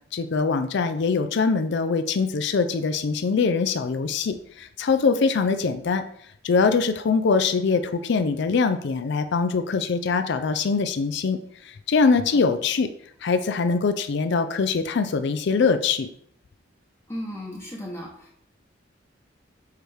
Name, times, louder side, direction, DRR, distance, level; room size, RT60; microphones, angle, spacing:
voice 1, 0.1-6.0 6.4-11.4 11.6-12.9 13.2-16.1, left 4 dB, 60° left, 10 dB, 0.4 m, -23 dB
voice 2, 17.1-18.4, equal, 15° left, -3 dB, 0.9 m, -35 dB
6.5 x 4.5 x 3.4 m, 0.66 s
head